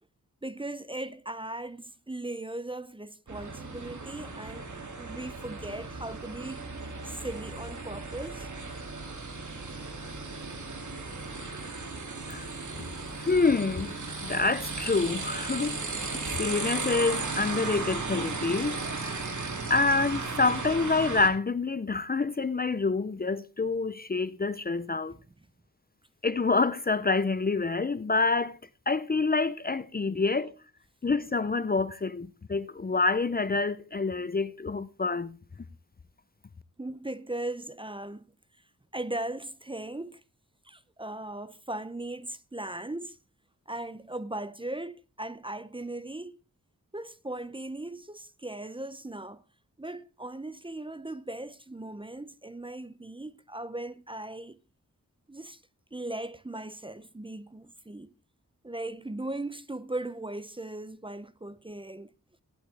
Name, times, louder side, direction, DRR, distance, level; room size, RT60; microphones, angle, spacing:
voice 1, 0.4-4.7 5.0-6.7 7.0-8.5 25.1-25.2 36.8-38.3 38.9-40.2 40.6-43.2 43.7-46.4 46.9-49.4 49.8-54.6 55.3-55.6 55.9-58.1 58.6-62.1, right 2 dB, 15° right, 0.6 m, -38 dB
sound 1, 3.3-21.3, right 3 dB, 60° right, 2.4 m, -36 dB
voice 2, 13.2-13.9 14.2-15.8 16.3-18.8 19.7-25.1 26.2-28.6 28.9-30.5 31.0-35.4, left 3 dB, 30° left, 0.5 m, -27 dB
15.0 x 11.0 x 3.4 m
wide cardioid pair, 75°, 33 cm